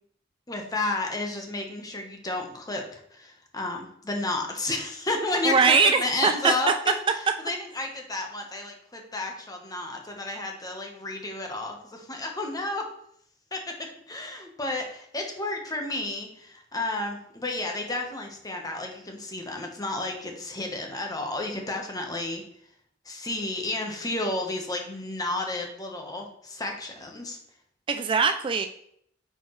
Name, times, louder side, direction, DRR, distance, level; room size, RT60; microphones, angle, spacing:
voice 1, 0.5-12.9 13.5-22.4 23.1-27.4, left 2 dB, 20° left, 2 dB, 1.1 m, -32 dB
voice 2, 5.4-6.5 27.9-28.7, right 5 dB, 25° right, 7 dB, 0.3 m, -21 dB
8.9 x 4.5 x 3.2 m, 0.69 s
head